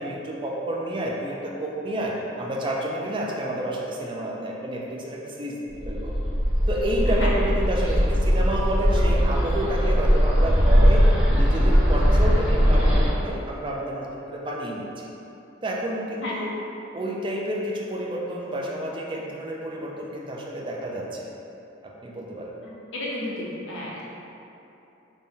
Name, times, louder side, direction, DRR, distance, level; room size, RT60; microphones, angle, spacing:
voice 1, 0.0-5.6 5.8-6.1 6.7-11.0 11.3-15.1 15.6-16.5 16.9-21.3 21.8-22.5, right 1 dB, 25° right, -2 dB, 0.4 m, -30 dB
Bird, 5.8-13.1, equal, 5° right, 0.8 m, -20 dB
voice 2, 22.9-24.0, left 1 dB, 80° left, -6 dB, 0.8 m, -32 dB
3.9 x 2.2 x 3.6 m, 2.8 s
head